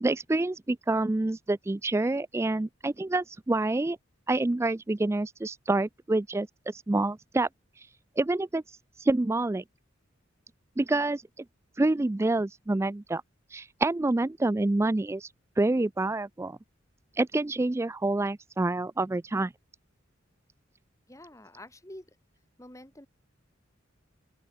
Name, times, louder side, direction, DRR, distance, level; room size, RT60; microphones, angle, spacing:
voice 1, 0.0-4.0 4.3-7.5 8.2-8.6 9.0-9.6 10.8-11.2 11.8-13.2 13.5-15.3 15.6-16.6 17.2-19.5, right 2 dB, 15° right, 0.3 m, -27 dB
voice 2, 21.1-22.1 22.6-23.1, left 1 dB, 15° left, 3.7 m, -47 dB
open air
head